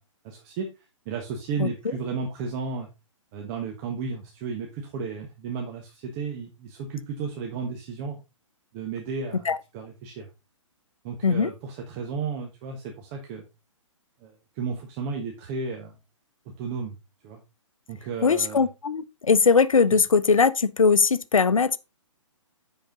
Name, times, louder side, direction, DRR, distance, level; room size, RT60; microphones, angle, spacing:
voice 1, 0.2-2.9 3.3-8.2 8.7-9.5 9.7-10.3 11.0-13.4 14.2-16.0 16.4-17.0 17.2-17.4 17.9-18.7 19.9-20.0, right 5 dB, 30° right, 1.3 m, -33 dB
voice 2, 18.2-21.8, left 5 dB, 90° left, 0.6 m, -20 dB
10.0 x 4.8 x 3.8 m
hypercardioid pair, 135°, 17 cm